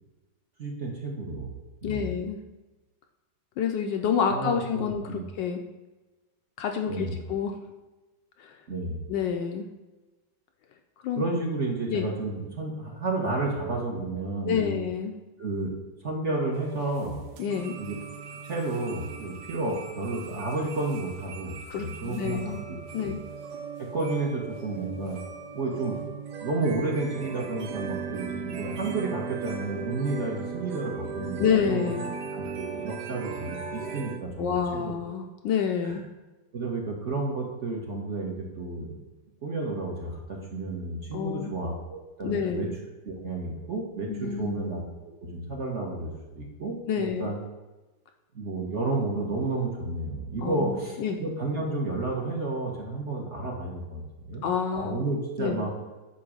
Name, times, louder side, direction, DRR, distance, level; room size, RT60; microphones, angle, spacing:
voice 1, 0.6-1.5 1.8-2.1 4.3-5.2 6.9-7.2 8.7-9.0 11.2-14.8 15.4-15.7 16.0-17.2 17.8-17.9 18.4-23.1 23.8-25.2 25.5-26.0 26.4-31.9 32.3-35.0 35.8-36.0 36.5-39.0 39.4-42.7 43.0-44.8 45.2-47.4 48.3-54.0 54.3-54.5 54.7-55.7, right 2 dB, 45° right, -2 dB, 1.1 m, -31 dB
voice 2, 1.8-2.4 3.6-5.6 6.6-7.5 8.4-8.5 9.1-9.7 11.0-11.2 11.9-12.1 14.4-15.1 17.4-17.7 21.7-22.6 22.9-23.2 31.4-32.0 34.4-36.0 41.1-41.5 42.2-42.7 44.1-44.6 46.9-47.3 50.4-51.2 54.4-55.0 55.4-55.6, left 7 dB, 75° left, 4 dB, 1.1 m, -28 dB
Musical clock, 16.5-34.2, right 6 dB, 65° right, 1.1 m, -38 dB
8.6 x 3.1 x 6.3 m, 1.1 s
omnidirectional pair, 2.2 m